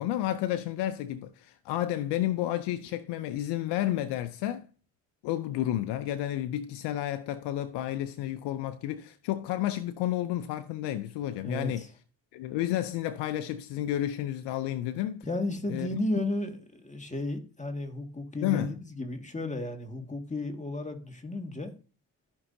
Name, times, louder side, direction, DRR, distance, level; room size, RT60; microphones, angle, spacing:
voice 1, 0.0-4.7 5.2-11.9 12.3-15.3 15.7-15.9 18.4-18.8, left 13 dB, 85° left, 0.6 m, -31 dB
voice 2, 11.4-11.9 15.2-21.7, left 2 dB, 20° left, 2.0 m, -33 dB
14.0 x 5.4 x 2.7 m
supercardioid pair, 50°, 40 cm